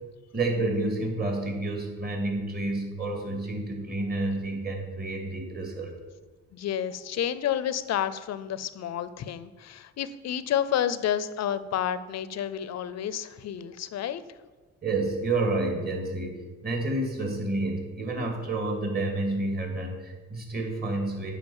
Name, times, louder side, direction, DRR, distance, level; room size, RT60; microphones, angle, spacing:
voice 1, 0.3-5.9 14.8-16.4 16.6-21.3, right 2 dB, 30° right, 1 dB, 2.5 m, -29 dB
voice 2, 6.5-14.2, left 10 dB, 60° left, 14 dB, 0.6 m, -30 dB
9.0 x 4.7 x 7.2 m, 1.3 s
cardioid pair, 90°, 30 cm